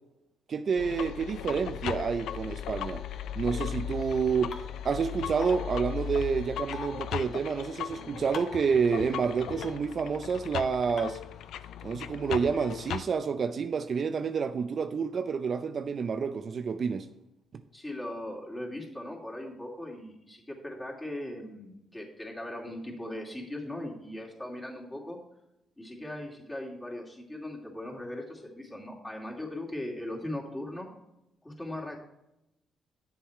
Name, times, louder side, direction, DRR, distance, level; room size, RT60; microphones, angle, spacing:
voice 1, 0.5-3.0 3.4-4.5 4.8-11.2 11.8-17.1, right 6 dB, 50° right, 0.5 m, -29 dB
sound 1, 0.8-13.0, left 10 dB, 80° left, 0.4 m, -37 dB
sound 2, 4.5-4.6 5.4-5.6 6.7-6.9 8.3-8.6 9.6-9.7 11.0-11.1, left 4 dB, 55° left, 1.5 m, -38 dB
voice 2, 17.7-25.2 25.8-30.9 31.4-32.0, left 1 dB, 15° left, 2.8 m, -39 dB
9.8 x 7.1 x 4.5 m
cardioid pair, 90°, 0 cm